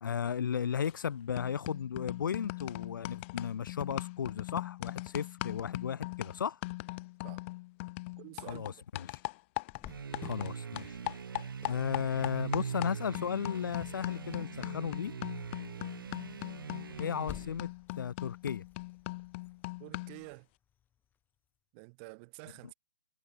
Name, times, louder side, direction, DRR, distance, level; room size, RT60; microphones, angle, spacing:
voice 1, 0.0-6.6 8.5-9.2 10.2-11.0 11.7-15.1 17.0-17.7 18.0-18.6, left 8 dB, 55° left, 1.0 m, -35 dB
sound 1, 0.8-1.1 1.4-10.5 10.8-20.2, left 23 dB, 30° left, 1.3 m, -41 dB
voice 2, 8.2-8.8 19.8-20.5 21.7-22.7, right 33 dB, 30° right, 3.9 m, -49 dB
Cricket, 9.7-21.2, left 9 dB, 15° left, 6.2 m, -55 dB
sound 2, 9.9-17.7, right 6 dB, 60° right, 3.7 m, -42 dB
figure-of-eight pair, 130°, 13 cm